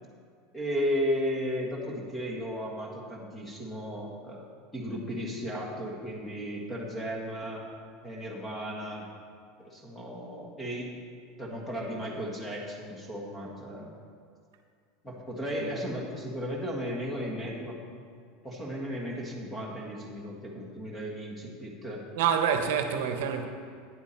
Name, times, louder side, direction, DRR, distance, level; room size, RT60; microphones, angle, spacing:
voice 1, 0.5-4.5 4.7-7.6 8.0-9.1 9.6-10.9 11.4-13.9 15.0-17.8 18.4-22.0, equal, 10° left, 1.4 m, -35 dB
voice 2, 22.2-23.4, right 8 dB, 75° right, 0.9 m, -27 dB
10.0 x 9.3 x 4.4 m
supercardioid pair, 175°, 0 cm